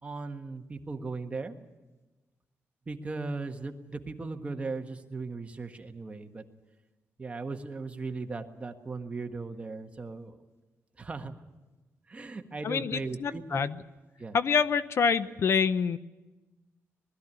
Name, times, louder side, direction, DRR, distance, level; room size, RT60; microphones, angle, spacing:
voice 1, 0.0-1.5 2.9-6.4 7.2-10.4 11.0-11.4 12.1-13.7 14.2-14.4, right 3 dB, 25° right, 5 dB, 1.4 m, -37 dB
voice 2, 12.6-13.8 14.3-16.0, left 6 dB, 55° left, 14 dB, 0.6 m, -26 dB
20.0 x 13.5 x 9.8 m, 1.2 s
cardioid pair, 125°, 5 cm